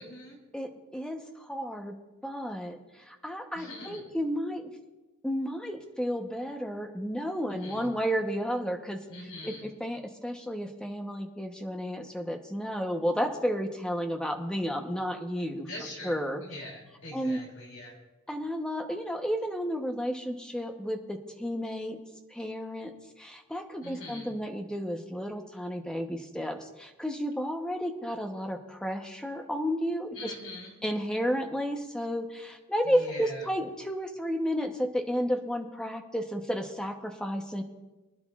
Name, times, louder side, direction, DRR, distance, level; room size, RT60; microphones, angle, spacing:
voice 1, 0.0-0.4 3.5-4.0 7.5-7.9 9.1-9.7 15.6-18.0 23.8-24.3 30.1-30.7 32.8-33.5, left 1 dB, 60° left, -2 dB, 3.5 m, -43 dB
voice 2, 0.5-2.0 2.2-2.8 3.1-4.7 5.2-9.0 9.4-15.7 16.0-16.4 17.1-17.4 18.3-22.0 22.3-22.9 23.2-30.3 30.8-37.6, equal, 5° left, 3 dB, 0.9 m, -32 dB
24.5 x 10.5 x 2.4 m, 1.1 s
head